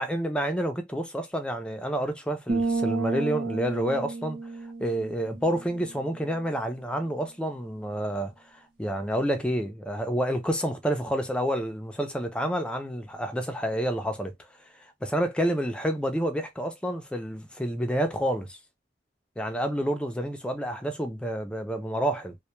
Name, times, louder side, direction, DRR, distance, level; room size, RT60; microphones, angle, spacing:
voice 1, 0.0-4.4 4.8-14.3 14.8-18.6 19.4-22.4, equal, 5° left, 0.4 m, -29 dB
sound 1, 2.5-6.2, right 3 dB, 55° right, 0.7 m, -31 dB
2.1 x 2.1 x 2.9 m
head